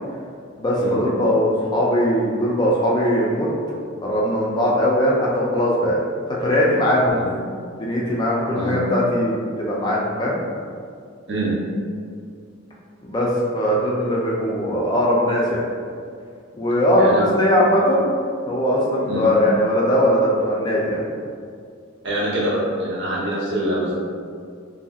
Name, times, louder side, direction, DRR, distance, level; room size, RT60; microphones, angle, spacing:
voice 1, 0.6-3.5 4.0-6.0 6.3-7.2 7.7-10.4 13.0-15.6 16.5-18.1 18.5-21.0, equal, 20° left, -4 dB, 0.3 m, -20 dB
voice 2, 17.0-17.3 19.0-19.2 22.0-23.9, right 1 dB, 65° right, -7 dB, 0.8 m, -24 dB
2.7 x 2.7 x 2.3 m, 2.2 s
head